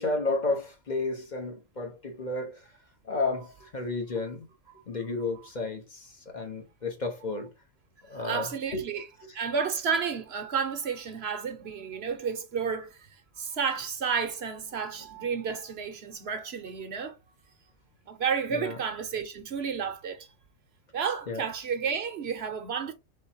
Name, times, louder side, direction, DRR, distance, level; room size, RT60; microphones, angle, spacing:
voice 1, 0.0-2.6 3.0-4.5 4.9-7.5 8.1-8.8 18.5-18.8 21.3-21.4, left 3 dB, 35° left, 1.0 m, -32 dB
voice 2, 8.2-9.1 9.3-13.1 13.4-17.2 18.1-20.3 20.9-22.9, right 6 dB, 55° right, 0.9 m, -31 dB
4.1 x 3.8 x 2.7 m
omnidirectional pair, 1.4 m